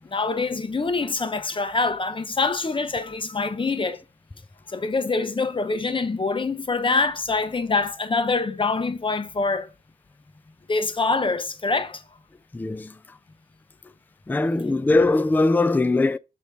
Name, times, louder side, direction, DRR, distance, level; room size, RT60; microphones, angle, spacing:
voice 1, 0.1-4.0 4.7-9.7 10.7-12.0, left 3 dB, 30° left, 0.9 m, -25 dB
voice 2, 12.5-13.0 14.3-16.2, left 2 dB, 10° left, 0.3 m, -21 dB
8.2 x 2.9 x 5.9 m
wide cardioid pair, 130°, 17 cm